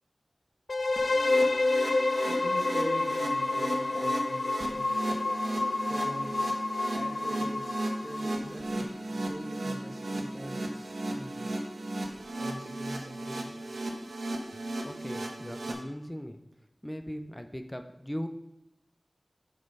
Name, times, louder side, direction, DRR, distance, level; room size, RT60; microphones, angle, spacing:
sound 1, 0.7-8.5, left 2 dB, 80° left, 0.3 m, -29 dB
sound 2, 1.0-15.7, right 1 dB, 80° right, 1.3 m, -35 dB
voice 1, 2.2-4.9 5.9-6.4 6.9-11.4 12.4-13.5, equal, 20° right, -6 dB, 1.9 m, -43 dB
voice 2, 14.8-16.4 16.8-18.3, equal, 10° left, 7 dB, 0.6 m, -39 dB
7.4 x 5.4 x 5.4 m, 0.91 s
wide cardioid pair, 55°, 0 cm